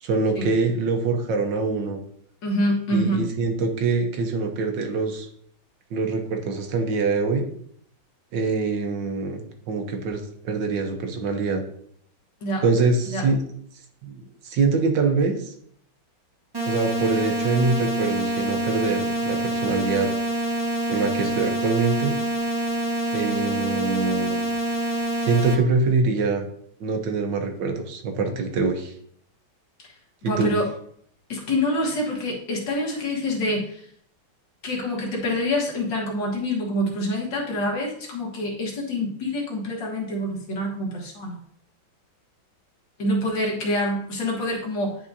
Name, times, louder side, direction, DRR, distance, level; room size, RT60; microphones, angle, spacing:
voice 1, 0.0-2.0 2.9-5.3 5.9-7.4 8.3-11.6 12.6-13.4 14.0-15.5 16.7-20.1 20.9-22.1 23.1-24.4 25.2-26.5 26.8-28.9 30.2-30.5, right 4 dB, 70° right, 5 dB, 1.5 m, -24 dB
voice 2, 2.4-3.3 12.4-12.6 13.1-13.3 30.2-30.7 31.3-33.8 34.6-41.4 43.0-45.0, left 1 dB, 65° left, -1 dB, 2.1 m, -26 dB
sound 1, 16.5-25.5, right 1 dB, 15° right, 1.0 m, -26 dB
10.0 x 4.7 x 2.7 m, 0.65 s
omnidirectional pair, 2.2 m